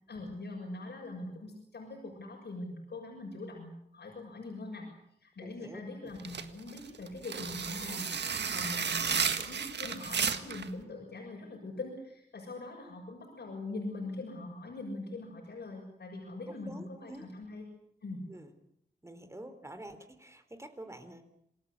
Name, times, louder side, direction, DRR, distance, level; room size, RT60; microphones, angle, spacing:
voice 1, 0.1-4.9 5.2-8.1 8.5-17.7 18.0-18.3, left 2 dB, 75° left, -1 dB, 6.9 m, -42 dB
voice 2, 5.4-6.1 16.5-17.3 18.3-18.5 19.0-21.2, right 1 dB, 15° right, 9 dB, 3.6 m, -47 dB
sound 1, 6.2-10.7, right 6 dB, 85° right, 1.8 m, -33 dB
27.5 x 19.5 x 8.4 m, 0.72 s
wide cardioid pair, 95°, 17 cm